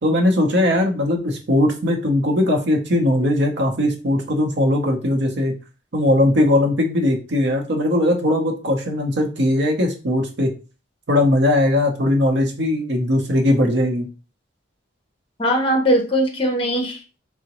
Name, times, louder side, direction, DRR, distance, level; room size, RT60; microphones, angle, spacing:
voice 1, 0.0-5.5 5.9-10.5 11.1-14.1, left 1 dB, 65° right, 3 dB, 0.7 m, -19 dB
voice 2, 15.4-17.2, equal, 30° left, 3 dB, 0.7 m, -20 dB
3.7 x 2.1 x 2.9 m, 0.33 s
head